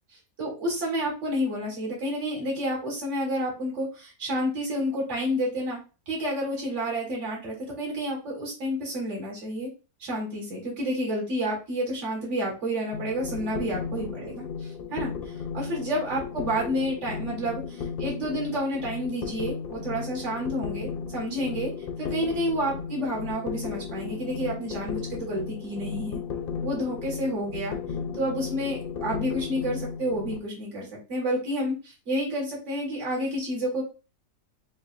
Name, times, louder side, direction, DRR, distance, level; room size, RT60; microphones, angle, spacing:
voice 1, 0.4-5.8 6.1-9.7 10.0-15.1 15.5-21.7 22.0-26.2 26.6-27.8 28.1-33.8, equal, 45° right, -2 dB, 2.0 m, -30 dB
sound 1, 12.9-30.4, left 6 dB, 80° left, 0.5 m, -35 dB
6.5 x 2.6 x 2.5 m, 0.31 s
omnidirectional pair, 1.8 m